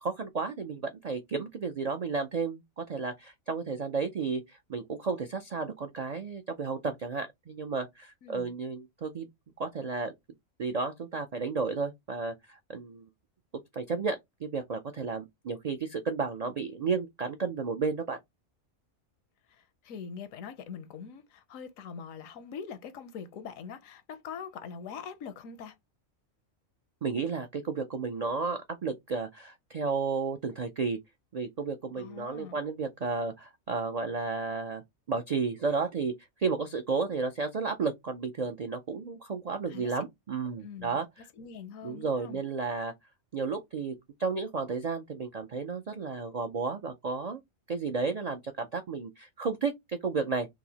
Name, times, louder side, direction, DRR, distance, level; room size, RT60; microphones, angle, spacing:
voice 1, 0.0-9.3 9.6-10.1 10.6-13.1 13.7-18.2 27.0-31.0 31.3-34.8 35.1-36.1 36.4-41.1 41.8-42.9 43.3-47.4 47.7-50.5, right 4 dB, 75° right, 0.3 m, -32 dB
voice 2, 8.2-8.5 19.5-25.8 32.0-32.6 39.7-39.9 40.6-41.0 41.4-42.4, left 6 dB, 85° left, 1.1 m, -43 dB
4.7 x 2.0 x 2.8 m
omnidirectional pair, 1.4 m